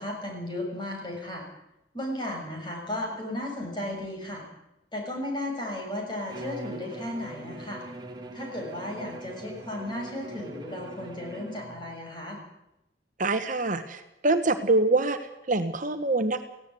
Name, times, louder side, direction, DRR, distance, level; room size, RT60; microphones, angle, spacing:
voice 1, 0.0-1.4 1.9-4.4 4.9-7.8 8.3-12.4, left 1 dB, 25° left, 0 dB, 6.9 m, -35 dB
Bowed string instrument, 6.3-11.9, right 1 dB, 25° right, 2.6 m, -41 dB
voice 2, 13.2-16.4, right 2 dB, 45° right, 8 dB, 1.3 m, -25 dB
17.5 x 16.5 x 9.5 m, 0.87 s
head